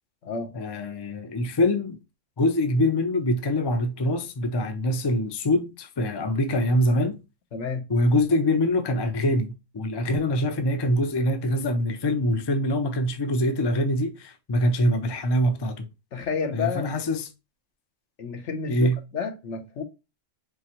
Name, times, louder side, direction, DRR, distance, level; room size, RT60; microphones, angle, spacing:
voice 1, 0.5-2.0 2.4-7.2 7.9-15.9 16.5-17.3 18.7-19.0, left 1 dB, 45° left, 0.3 m, -24 dB
voice 2, 7.5-7.8 16.1-16.9 18.2-18.9 19.1-19.8, left 5 dB, 65° left, 1.2 m, -30 dB
4.6 x 3.2 x 2.9 m
omnidirectional pair, 1.3 m